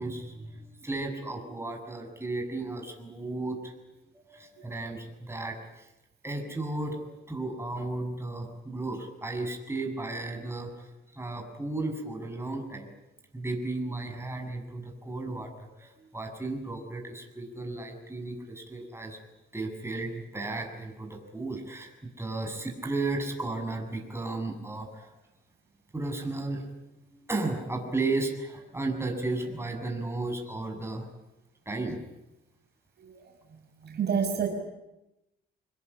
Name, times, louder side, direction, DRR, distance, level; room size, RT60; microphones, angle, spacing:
voice 1, 0.0-3.7 4.1-5.9 6.2-12.9 13.3-19.2 19.5-25.1 25.9-26.7 27.2-31.0 31.7-32.0, right 2 dB, 10° right, 2 dB, 7.4 m, -34 dB
voice 2, 33.0-34.5, right 7 dB, 55° right, 4 dB, 5.6 m, -31 dB
26.0 x 21.0 x 10.0 m, 0.92 s
cardioid pair, 90°, 20 cm